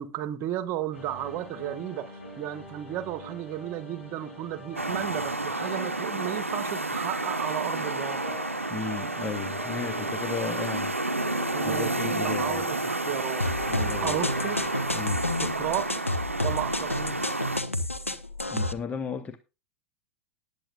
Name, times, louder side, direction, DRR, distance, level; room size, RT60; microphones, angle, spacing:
voice 1, 0.0-8.5 11.5-11.9 12.2-13.5 14.0-14.6 15.4-15.9 16.4-17.2, right 12 dB, 40° right, 1.2 m, -33 dB
sound 1, 0.9-15.1, left 2 dB, 75° left, 6.1 m, -43 dB
sound 2, 4.8-17.6, right 2 dB, 90° right, 0.6 m, -31 dB
voice 2, 8.7-10.9 11.2-12.6 13.7-14.3 14.9-15.2 17.8-18.0 18.5-19.4, left 6 dB, 20° left, 0.8 m, -35 dB
sound 3, 13.4-18.7, left 1 dB, 90° left, 0.8 m, -30 dB
19.5 x 8.3 x 2.4 m
figure-of-eight pair, 85°, 7 cm